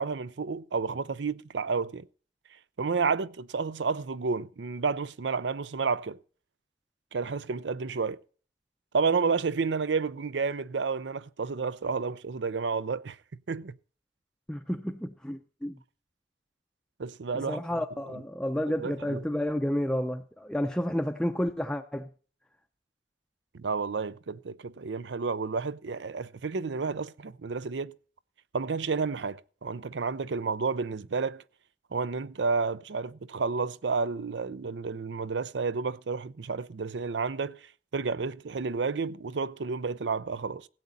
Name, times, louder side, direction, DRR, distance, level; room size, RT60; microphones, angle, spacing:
voice 1, 0.0-2.1 2.8-6.2 7.1-8.2 8.9-13.2 13.5-13.8 17.0-17.6 18.8-19.2 23.5-28.0 28.5-31.4 31.9-37.6 37.9-40.7, right 4 dB, 85° right, 0.6 m, -31 dB
voice 2, 14.5-15.8 17.3-22.1, equal, 5° left, 0.5 m, -31 dB
16.5 x 8.4 x 4.1 m
head